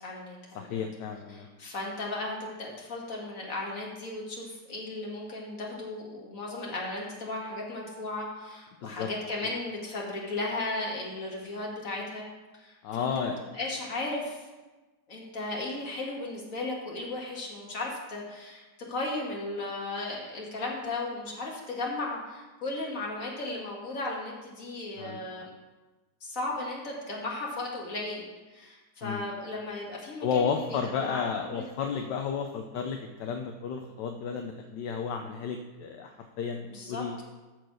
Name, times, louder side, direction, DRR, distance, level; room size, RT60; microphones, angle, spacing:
voice 1, 0.0-0.8 1.3-12.2 12.6-14.4 15.1-18.6 18.9-25.5 26.2-28.2 28.5-31.7 36.7-37.2, left 2 dB, 40° left, -2 dB, 2.4 m, -36 dB
voice 2, 0.5-1.5 8.8-9.1 12.8-13.4 25.0-25.2 29.0-29.3 30.2-37.2, left 6 dB, 65° left, 5 dB, 1.2 m, -32 dB
13.5 x 4.7 x 6.3 m, 1.2 s
omnidirectional pair, 2.3 m